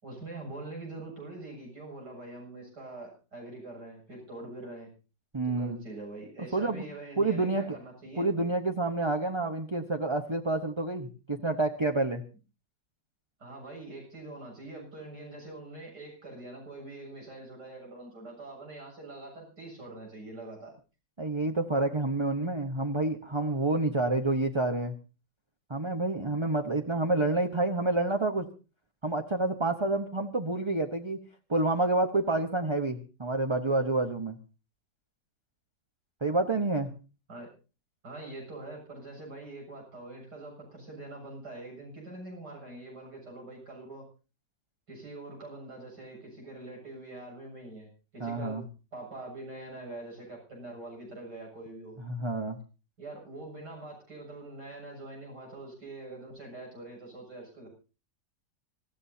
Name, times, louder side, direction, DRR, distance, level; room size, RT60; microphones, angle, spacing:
voice 1, 0.0-4.9 5.5-8.3 13.4-20.7 37.3-37.5 38.0-44.1 44.9-48.6 48.9-52.0 53.0-57.7, right 2 dB, 75° right, 0 dB, 8.1 m, -44 dB
voice 2, 5.3-5.8 6.5-6.8 7.2-7.8 8.2-12.2 21.2-24.9 25.7-28.5 29.0-31.2 31.5-34.4 36.2-36.9 48.2-48.6 52.0-52.6, right 2 dB, 20° right, 4 dB, 0.9 m, -28 dB
26.0 x 14.0 x 2.8 m, 0.33 s
omnidirectional pair, 1.8 m